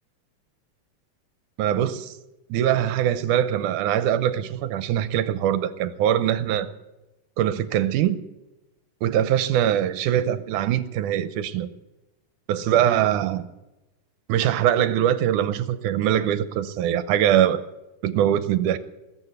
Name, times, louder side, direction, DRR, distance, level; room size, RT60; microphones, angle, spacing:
voice 1, 1.6-2.1 2.5-6.7 7.4-8.2 9.0-11.7 12.5-13.5 14.3-17.6 18.0-18.8, right 11 dB, 85° right, 13 dB, 2.3 m, -22 dB
20.5 x 8.0 x 8.0 m, 1.0 s
omnidirectional pair, 3.6 m